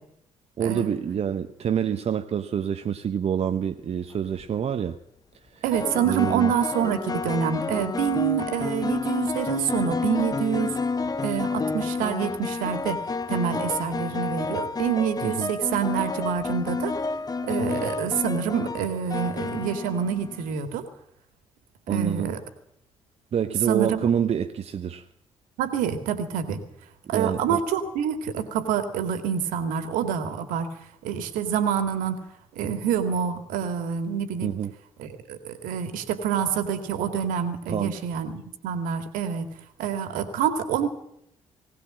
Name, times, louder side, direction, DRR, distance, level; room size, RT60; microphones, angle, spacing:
voice 1, 0.6-5.0 5.5-5.6 6.0-6.5 15.2-15.5 21.9-22.3 23.3-25.1 27.1-27.6 34.4-34.7 37.7-38.0, right 8 dB, 40° right, 9 dB, 1.0 m, -27 dB
sound 1, 4.1-4.5 5.7-20.5, left 4 dB, 25° left, 1.1 m, -30 dB
voice 2, 5.6-10.8 11.2-13.0 13.3-16.9 17.4-20.9 21.9-22.4 23.7-24.1 25.6-26.6 27.1-30.7 31.0-32.2 32.6-34.5 35.0-39.5 39.8-40.9, right 8 dB, 65° right, 9 dB, 2.2 m, -27 dB
20.0 x 18.0 x 7.6 m, 0.77 s
figure-of-eight pair, 45°, 15 cm